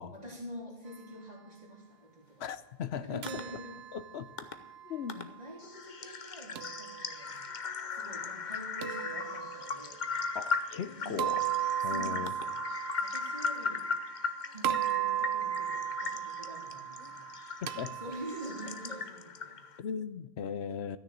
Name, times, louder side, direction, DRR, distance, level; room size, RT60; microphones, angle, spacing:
voice 1, 0.0-2.4 3.0-3.8 5.1-10.0 11.0-12.6 13.0-13.9 14.5-17.3 17.9-19.6, right 1 dB, 40° right, 3.0 m, -46 dB
voice 2, 2.4-3.3 3.9-4.3 4.8-5.3 10.3-11.4 11.8-12.3 17.6-18.0 19.8-21.0, left 7 dB, 85° left, 1.0 m, -38 dB
sound 1, 3.2-5.3 6.5-7.5 8.8-10.0 11.2-14.3 14.6-19.0, right 10 dB, 85° right, 0.9 m, -36 dB
sound 2, 3.3-3.4 4.4-4.5 5.1-5.2 5.6-19.8, left 4 dB, 50° left, 0.9 m, -38 dB
13.5 x 6.5 x 9.1 m
omnidirectional pair, 1.0 m